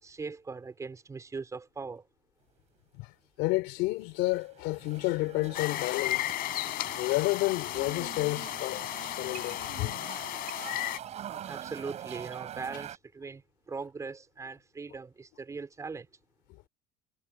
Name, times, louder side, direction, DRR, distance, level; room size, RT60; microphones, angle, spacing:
voice 1, 0.0-2.1 11.4-16.1, right 4 dB, 15° right, 4.5 m, -40 dB
voice 2, 3.4-6.3 7.0-9.9, left 21 dB, 75° left, 3.1 m, -30 dB
sound 1, 4.0-13.0, right 10 dB, 40° right, 3.8 m, -44 dB
sound 2, 5.5-11.0, left 16 dB, 55° left, 4.3 m, -34 dB
cardioid pair, 165°, 19 cm